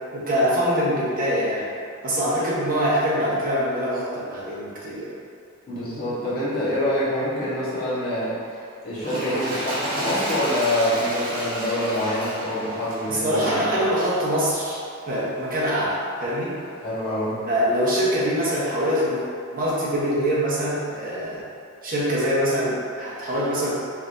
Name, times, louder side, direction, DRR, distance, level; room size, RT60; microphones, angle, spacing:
voice 1, 0.1-1.7 2.0-5.2 13.1-14.8 15.1-16.6 17.5-19.2 19.5-21.4 21.8-23.7, equal, 45° right, -8 dB, 1.0 m, -24 dB
voice 2, 5.7-8.4 8.8-13.6 16.8-17.4, left 1 dB, 45° left, -10 dB, 1.4 m, -26 dB
Toilet flush, 8.9-14.4 15.1-15.2, right 1 dB, 80° right, 1.3 m, -31 dB
4.7 x 3.6 x 2.6 m, 2.4 s
head